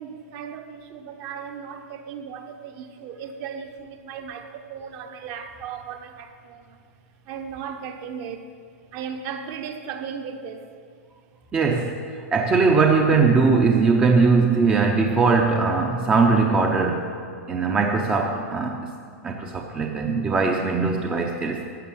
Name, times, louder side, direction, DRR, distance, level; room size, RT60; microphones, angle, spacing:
voice 1, 0.0-6.8 7.3-8.4 8.9-10.7, right 7 dB, 35° right, 6 dB, 1.0 m, -36 dB
voice 2, 11.5-12.0 12.3-17.1 17.5-18.8 19.2-21.6, right 4 dB, 15° right, 2 dB, 0.7 m, -20 dB
13.5 x 6.9 x 8.6 m, 2.1 s
supercardioid pair, 160°, 8 cm